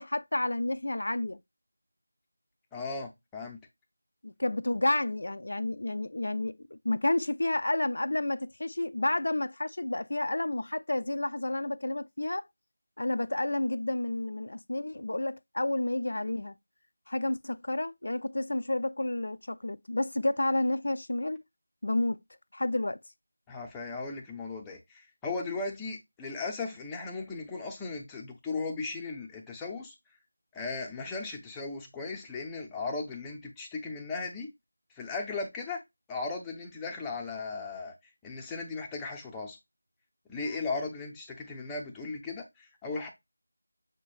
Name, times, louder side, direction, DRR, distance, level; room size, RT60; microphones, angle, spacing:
voice 1, 0.0-1.4 4.2-12.5 13.0-16.5 17.1-21.4 21.8-22.2 22.5-23.0, left 1 dB, 60° left, 0.3 m, -30 dB
voice 2, 2.7-3.6 23.5-29.9 30.5-34.5 34.9-35.8 36.1-39.6 40.3-43.1, left 3 dB, 5° left, 0.6 m, -37 dB
6.6 x 3.1 x 2.4 m
figure-of-eight pair, 170°, 0 cm